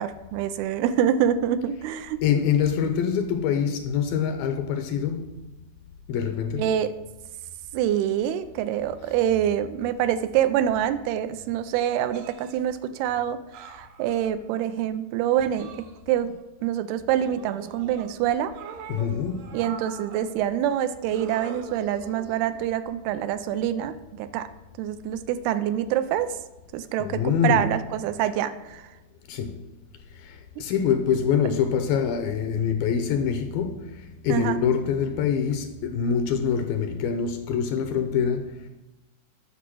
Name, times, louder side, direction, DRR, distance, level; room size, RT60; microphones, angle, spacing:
voice 1, 0.0-2.2 6.6-6.9 7.7-13.4 13.7-15.7 16.1-16.3 16.6-18.5 19.5-24.5 24.8-26.3 26.7-28.8 34.3-34.6, right 10 dB, 85° right, 2.5 m, -26 dB
voice 2, 2.2-5.4 6.1-6.7 18.9-19.6 27.0-27.7 29.3-29.6 30.1-38.7, left 7 dB, 80° left, 2.2 m, -25 dB
sound 1, 12.1-12.6 13.5-14.4 15.5-16.4 17.2-18.1 18.5-20.3 21.1-22.6 23.7-23.9, right 6 dB, 70° right, 2.3 m, -42 dB
8.5 x 6.8 x 6.1 m
omnidirectional pair, 4.6 m